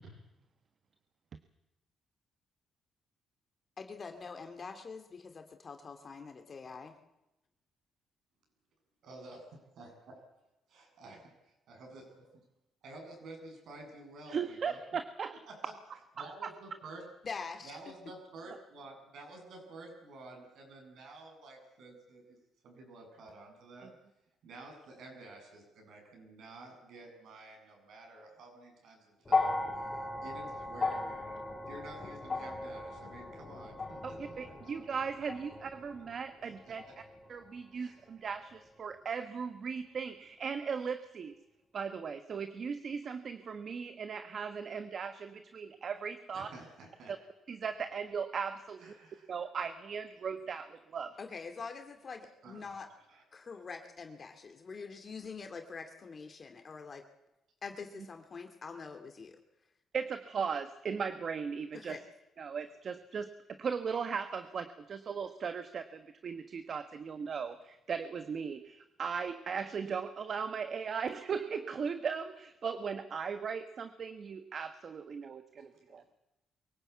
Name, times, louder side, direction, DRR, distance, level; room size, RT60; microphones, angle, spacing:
voice 1, 3.8-7.0 17.2-17.9 51.2-52.9 53.3-57.0 57.6-59.4 61.7-62.0, left 5 dB, 40° left, 5 dB, 2.3 m, -45 dB
voice 2, 9.0-10.2 10.7-12.4 12.8-14.8 15.5-15.7 16.2-17.0 17.6-22.4 22.6-23.9 24.4-29.9 30.2-34.5 36.4-36.8 37.8-38.0 46.3-47.1 48.8-49.3 52.4-52.8 53.1-53.2 75.6-76.1, right 2 dB, 70° right, 2 dB, 7.9 m, -51 dB
voice 3, 14.3-15.4 16.2-16.3 23.8-23.9 34.0-36.8 37.3-41.4 41.7-46.5 47.1-47.2 47.5-48.9 49.3-51.2 59.9-62.0 62.4-76.0, right 6 dB, 50° right, 9 dB, 1.3 m, -38 dB
sound 1, 29.2-37.6 38.7-38.8, left 3 dB, 25° left, 4.3 m, -37 dB
23.0 x 17.0 x 8.4 m, 0.90 s
cardioid pair, 90°, 0 cm